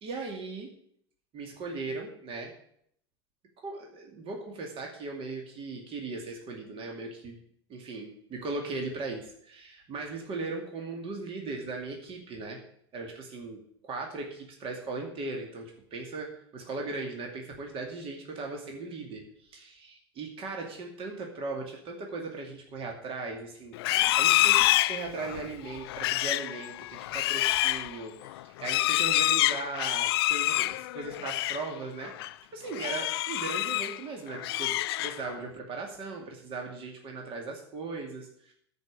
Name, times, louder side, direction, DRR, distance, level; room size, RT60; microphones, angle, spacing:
voice 1, 0.0-0.7 1.3-2.5 3.6-7.4 7.7-12.6 12.9-13.6 13.8-38.5, right 3 dB, 40° right, 1 dB, 2.5 m, -38 dB
Livestock farm animals working animals, 23.7-31.7 32.0-32.3 32.7-34.0 34.3-35.4, left 17 dB, 65° left, 0.4 m, -27 dB
13.0 x 5.6 x 8.6 m, 0.67 s
hypercardioid pair, 80°, 14 cm